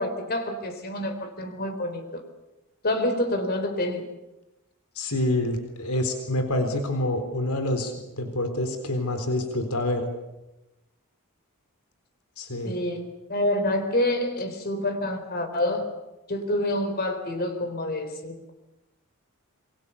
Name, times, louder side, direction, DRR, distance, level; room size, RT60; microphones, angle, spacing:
voice 1, 0.0-2.2 2.8-4.0 12.6-15.9 16.3-18.5, left 1 dB, 45° left, 8 dB, 3.9 m, -27 dB
voice 2, 5.0-10.1 12.4-12.7, left 1 dB, 85° left, 7 dB, 3.9 m, -27 dB
28.0 x 23.0 x 7.1 m, 0.96 s
head